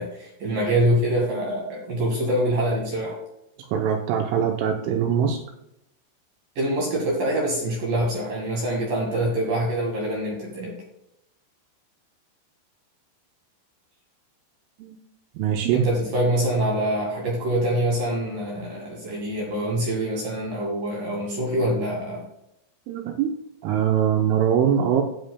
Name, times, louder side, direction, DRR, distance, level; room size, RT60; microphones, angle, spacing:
voice 1, 0.0-3.2 6.6-10.7 15.7-22.3, right 1 dB, 55° right, -2 dB, 2.7 m, -25 dB
voice 2, 3.7-5.4 14.8-14.9 15.4-15.9 22.9-23.3 23.6-25.0, right 8 dB, 80° right, 3 dB, 3.2 m, -22 dB
13.0 x 9.1 x 2.2 m, 0.81 s
omnidirectional pair, 6.0 m